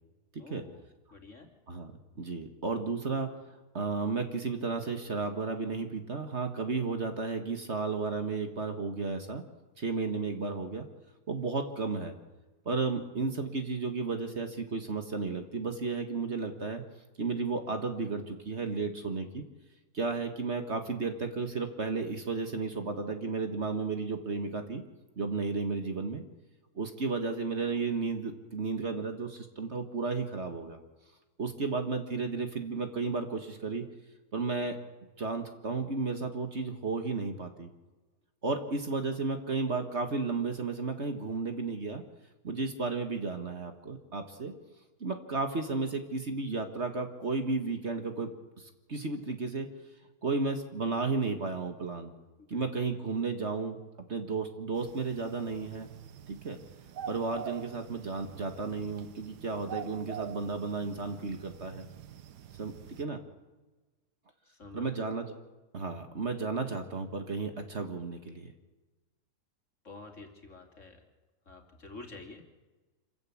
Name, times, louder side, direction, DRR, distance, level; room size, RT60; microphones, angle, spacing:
voice 1, 0.4-0.8 1.1-1.5 52.4-52.6 64.4-64.9 69.8-71.0 71.5-72.4, left 3 dB, 50° left, 4 dB, 3.1 m, -48 dB
voice 2, 1.7-9.4 9.8-10.9 11.3-12.1 12.7-16.8 17.2-19.4 19.9-24.8 25.2-26.2 26.8-30.8 31.4-33.9 34.3-34.8 35.2-37.7 38.4-42.0 42.4-44.5 45.0-48.3 48.6-49.7 50.2-52.1 52.5-53.8 54.1-55.9 56.3-56.6 57.1-61.9 62.6-62.7 63.0-63.2 64.7-65.3 65.7-68.5, right 4 dB, 45° right, 6 dB, 1.8 m, -33 dB
sound 1, 54.7-63.1, right 10 dB, 85° right, 1.5 m, -46 dB
26.5 x 14.5 x 8.6 m, 1.2 s
omnidirectional pair, 1.7 m